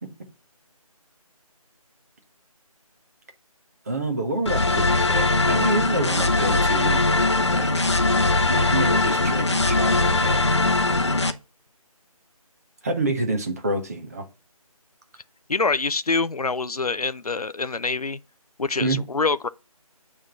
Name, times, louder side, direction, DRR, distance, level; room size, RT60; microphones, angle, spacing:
voice 1, 3.8-7.0 7.5-8.0 8.5-10.6 12.8-14.3 18.8-19.0, right 2 dB, 25° right, 1.2 m, -28 dB
sound 1, 4.5-11.3, left 2 dB, 50° left, 0.9 m, -21 dB
voice 2, 15.5-18.2 18.6-19.5, left 4 dB, 80° left, 0.6 m, -25 dB
8.8 x 3.6 x 5.6 m
figure-of-eight pair, 160°, 19 cm